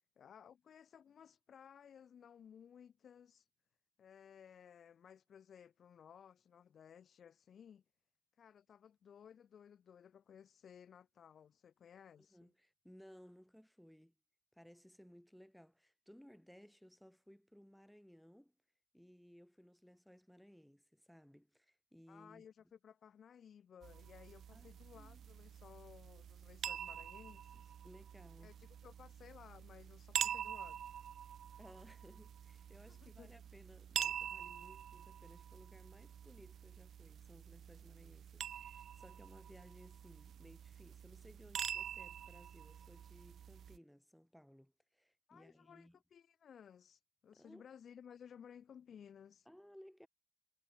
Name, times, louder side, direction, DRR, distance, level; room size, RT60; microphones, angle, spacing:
voice 1, 0.2-3.5 4.0-7.8 8.4-12.5 22.1-27.7 28.4-30.8 32.9-33.3 45.3-49.5, left 8 dB, 55° left, 0.4 m, -59 dB
voice 2, 12.3-14.1 14.5-18.5 18.9-22.5 24.5-25.2 27.8-28.5 30.2-30.4 31.6-46.0 47.3-47.7 49.5-50.1, equal, ahead, 1.1 m, -61 dB
sound 1, 23.8-43.8, right 9 dB, 60° right, 0.4 m, -46 dB
cardioid pair, 90°, 0 cm